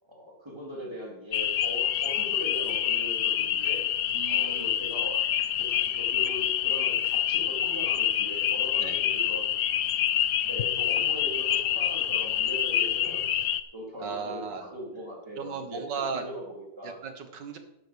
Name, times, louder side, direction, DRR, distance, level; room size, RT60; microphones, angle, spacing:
voice 1, 0.0-3.9 4.3-5.2 5.6-9.5 10.4-13.3 13.7-17.0, right 1 dB, 15° right, -2 dB, 3.5 m, -40 dB
sound 1, 1.3-13.6, left 10 dB, 65° left, 0.9 m, -27 dB
voice 2, 4.1-4.7 8.8-9.0 14.0-14.7 15.4-16.2 16.8-17.6, right 5 dB, 65° right, 7 dB, 2.0 m, -36 dB
11.0 x 8.3 x 6.4 m, 0.88 s
omnidirectional pair, 2.1 m